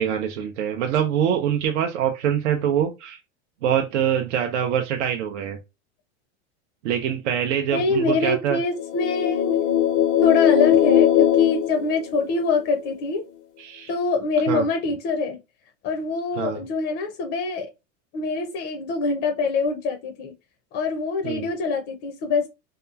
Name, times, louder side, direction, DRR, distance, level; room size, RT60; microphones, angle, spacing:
voice 1, 0.0-3.2 3.6-5.6 6.8-8.6 13.6-13.9 14.5-14.7 16.4-16.6 21.2-21.5, right 9 dB, 85° right, 0.6 m, -24 dB
voice 2, 7.7-9.6 10.2-13.2 13.9-15.4 15.8-17.7 18.1-20.3 20.7-22.5, left 4 dB, 35° left, 0.4 m, -24 dB
sound 1, 8.8-12.6, left 10 dB, 85° left, 0.6 m, -20 dB
2.9 x 2.3 x 2.2 m
supercardioid pair, 140°, 35 cm